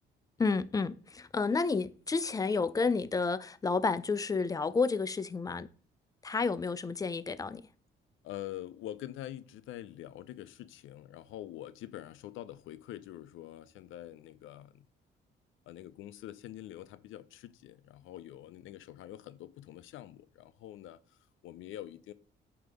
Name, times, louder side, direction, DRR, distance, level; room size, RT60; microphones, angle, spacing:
voice 1, 0.4-5.7 6.2-7.6, left 4 dB, 20° left, 0.4 m, -30 dB
voice 2, 8.2-14.9 15.7-22.1, left 13 dB, 80° left, 0.5 m, -45 dB
7.9 x 2.9 x 5.1 m
cardioid pair, 90°, 20 cm